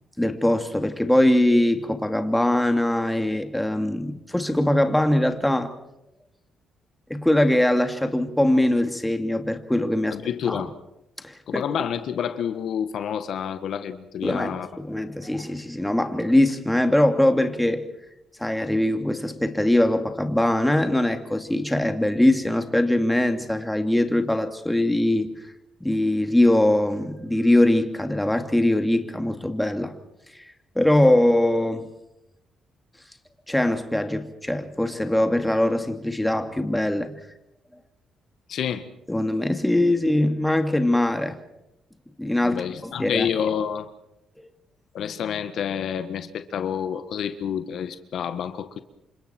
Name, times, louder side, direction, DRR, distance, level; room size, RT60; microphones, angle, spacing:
voice 1, 0.2-5.7 7.1-10.2 10.5-10.6 11.2-11.6 14.2-17.8 18.4-25.4 25.8-29.9 30.3-30.4 30.8-31.9 33.5-37.2 39.1-41.4 42.2-43.3 44.4-44.5, left 1 dB, 5° left, 2.5 m, -22 dB
voice 2, 10.1-10.7 11.5-14.7 38.5-38.9 42.4-43.9 44.9-48.8, left 8 dB, 70° left, 1.5 m, -28 dB
29.0 x 26.0 x 4.5 m
cardioid pair, 90°, 0 cm